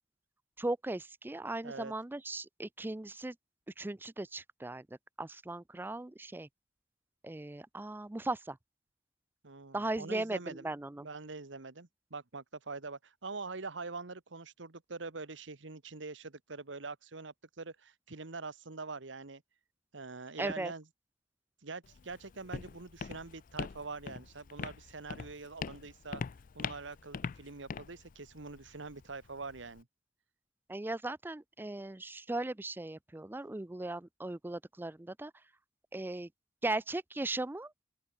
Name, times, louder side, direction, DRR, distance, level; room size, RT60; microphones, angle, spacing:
voice 1, 0.6-3.4 3.8-4.9 5.2-6.5 7.2-8.6 9.7-11.1 20.4-20.7 30.7-35.3 35.9-36.3 36.6-37.7, right 2 dB, 10° right, 0.4 m, -37 dB
voice 2, 9.4-10.6 11.0-19.4 19.9-20.8 21.6-26.2 26.5-29.9, right 3 dB, 75° right, 1.4 m, -44 dB
Walk footsteps, 21.8-29.8, left 5 dB, 45° left, 0.4 m, -43 dB
open air
head